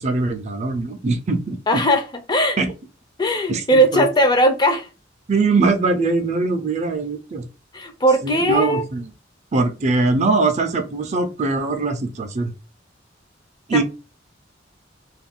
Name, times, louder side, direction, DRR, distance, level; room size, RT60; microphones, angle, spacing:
voice 1, 0.0-1.6 2.6-2.7 3.5-4.1 5.3-7.5 8.2-9.1 9.5-12.5 13.7-13.8, right 3 dB, 40° right, 7 dB, 0.4 m, -21 dB
voice 2, 1.7-2.6 3.2-4.9 7.7-8.8 13.7-13.8, equal, 25° left, 6 dB, 0.4 m, -18 dB
2.3 x 2.1 x 3.5 m, 0.30 s
head